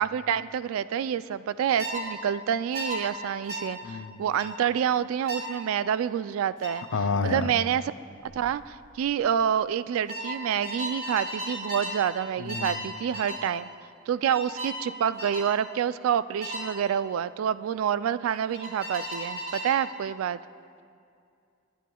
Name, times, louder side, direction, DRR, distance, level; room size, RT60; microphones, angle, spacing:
voice 1, 0.0-6.9 7.2-7.9 8.3-13.7 14.1-20.4, right 8 dB, 80° right, 15 dB, 0.3 m, -27 dB
sound 1, 1.8-2.0 2.7-3.0 3.5-3.7 4.4-4.6 5.3-5.5 6.6-6.8 8.3-8.5 8.8-9.2 10.1-12.0 12.5-12.8 13.1-13.4 14.3-14.8 15.2-15.5 16.4-16.7 18.5-19.8, equal, 45° right, 2.0 m, -35 dB
voice 2, 3.8-4.2 6.9-7.5 12.4-12.9, left 4 dB, 65° left, 9 dB, 0.5 m, -29 dB
22.5 x 9.2 x 2.3 m, 2.4 s
head